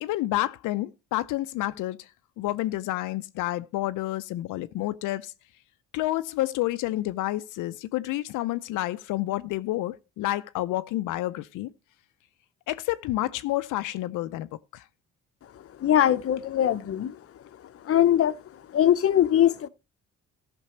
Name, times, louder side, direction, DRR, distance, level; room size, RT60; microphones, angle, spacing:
voice 1, 0.0-2.1 2.4-5.3 5.9-11.7 12.7-14.8, left 16 dB, 85° left, 0.5 m, -29 dB
voice 2, 15.8-17.1 17.9-18.3 18.7-19.7, left 10 dB, 50° left, 0.7 m, -21 dB
14.0 x 6.1 x 4.3 m
cardioid pair, 90°, 30 cm